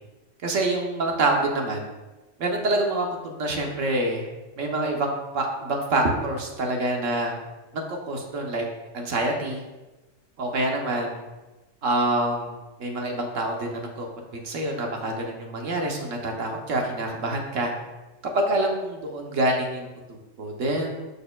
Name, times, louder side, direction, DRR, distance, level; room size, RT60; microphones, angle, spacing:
voice 1, 0.4-1.8 2.4-4.3 4.6-7.3 7.7-8.7 8.9-9.6 10.4-11.2 11.8-14.1 14.3-17.7 18.3-21.1, right 2 dB, 75° right, 1 dB, 1.3 m, -26 dB
12.0 x 4.3 x 2.3 m, 1.1 s
omnidirectional pair, 1.3 m